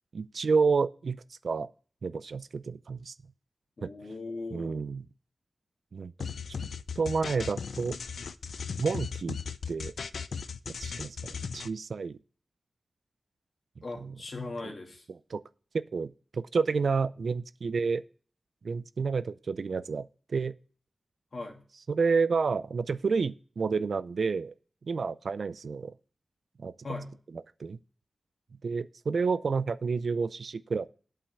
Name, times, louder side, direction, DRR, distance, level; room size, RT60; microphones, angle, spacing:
voice 1, 0.1-1.7 2.0-3.1 3.8-3.9 4.5-5.0 5.9-6.3 7.0-8.0 8.8-9.4 9.7-9.9 10.7-12.2 14.0-14.1 15.3-15.4 15.7-18.0 18.6-20.5 21.9-24.5 24.9-25.9 26.6-26.7 27.6-27.8 28.6-30.9, right 5 dB, 70° right, 0.4 m, -30 dB
voice 2, 3.8-4.9 13.8-15.1 21.3-21.6 26.8-27.1, left 3 dB, 55° left, 2.1 m, -39 dB
sound 1, 6.2-11.7, left 6 dB, 90° left, 0.5 m, -37 dB
8.5 x 5.6 x 7.1 m
wide cardioid pair, 95°, 0 cm